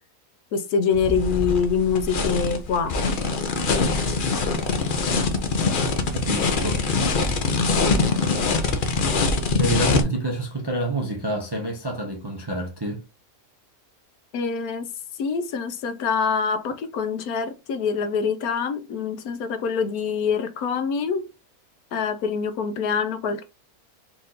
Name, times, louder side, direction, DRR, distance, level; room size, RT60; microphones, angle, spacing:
voice 1, 0.5-2.9 14.3-14.9 15.2-21.3 21.9-23.4, left 6 dB, 80° left, 1.1 m, -25 dB
sound 1, 0.9-10.0, left 4 dB, 50° left, 0.6 m, -23 dB
voice 2, 6.1-6.8 9.6-13.0, right 2 dB, 30° right, 0.5 m, -27 dB
4.4 x 2.6 x 3.8 m
omnidirectional pair, 1.6 m